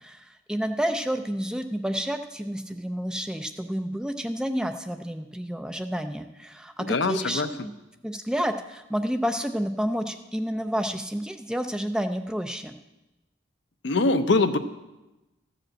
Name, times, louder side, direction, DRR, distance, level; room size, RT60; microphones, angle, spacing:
voice 1, 0.0-7.7 8.0-12.8, equal, 5° right, 7 dB, 0.4 m, -30 dB
voice 2, 6.8-7.5 13.8-14.6, left 3 dB, 60° left, 10 dB, 0.6 m, -23 dB
14.0 x 5.0 x 7.6 m, 1.0 s
head